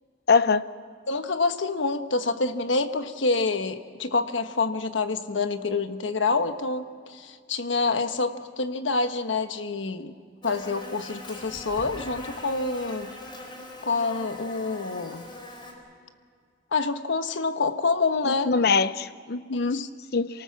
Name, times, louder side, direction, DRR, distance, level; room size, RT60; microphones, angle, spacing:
voice 1, 0.3-0.6 18.3-19.8 20.1-20.3, left 4 dB, 60° left, 14 dB, 0.7 m, -23 dB
voice 2, 1.1-10.1 10.4-13.1 13.8-15.3 16.7-18.6 19.5-19.9, left 3 dB, 85° left, 9 dB, 1.2 m, -27 dB
Buzz, 10.4-15.7, left 1 dB, 25° left, 4.6 m, -41 dB
27.5 x 19.0 x 7.3 m, 2.1 s
head